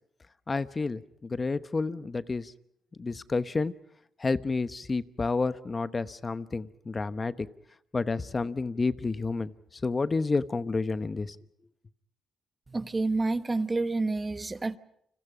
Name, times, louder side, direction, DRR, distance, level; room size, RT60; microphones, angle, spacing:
voice 1, 0.5-2.5 3.0-3.7 4.2-7.5 7.9-11.4, left 3 dB, 30° left, 1.0 m, -30 dB
voice 2, 12.7-14.8, right 3 dB, 25° right, 1.1 m, -29 dB
29.5 x 26.5 x 5.1 m
cardioid pair, 90°, 0 cm